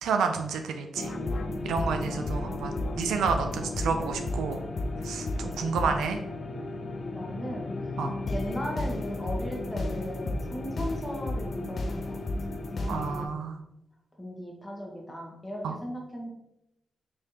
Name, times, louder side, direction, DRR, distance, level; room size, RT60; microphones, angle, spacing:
voice 1, 0.0-1.1 1.6-4.6 5.0-6.2 8.0-8.1 12.9-13.6 15.6-15.8, right 5 dB, 85° right, 6 dB, 0.3 m, -30 dB
sound 1, 1.0-13.3, left 2 dB, 65° left, 0.4 m, -33 dB
voice 2, 5.9-6.2 7.1-7.7 8.3-12.2 12.7-13.5 14.2-16.3, equal, 20° left, -1 dB, 1.3 m, -38 dB
3.4 x 3.2 x 2.8 m, 0.84 s
supercardioid pair, 45°, 0 cm